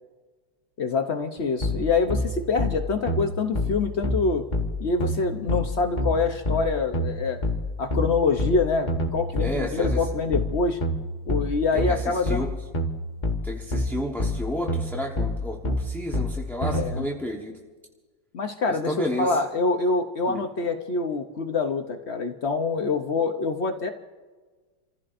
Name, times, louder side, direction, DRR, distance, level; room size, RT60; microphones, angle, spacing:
voice 1, 0.8-4.4 4.8-7.4 7.8-10.8 11.3-12.5 16.6-17.0 18.3-23.9, left 4 dB, 60° left, 5 dB, 0.7 m, -25 dB
sound 1, 1.6-16.9, left 1 dB, 25° left, 1.2 m, -27 dB
voice 2, 9.4-10.0 11.7-12.6 13.4-17.6 18.7-19.4 20.3-20.4, left 1 dB, ahead, -1 dB, 0.7 m, -31 dB
30.0 x 15.0 x 2.5 m, 1.4 s
omnidirectional pair, 2.0 m